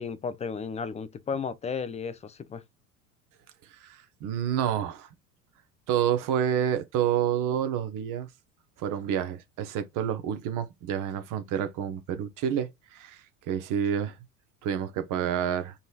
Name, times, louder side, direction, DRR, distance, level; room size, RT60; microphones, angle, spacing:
voice 1, 0.0-2.6, left 5 dB, 15° left, 0.5 m, -34 dB
voice 2, 3.7-5.1 5.9-8.3 8.8-14.2 14.6-15.7, right 9 dB, 45° right, 0.9 m, -29 dB
4.1 x 3.1 x 2.4 m
figure-of-eight pair, 70°, 45 cm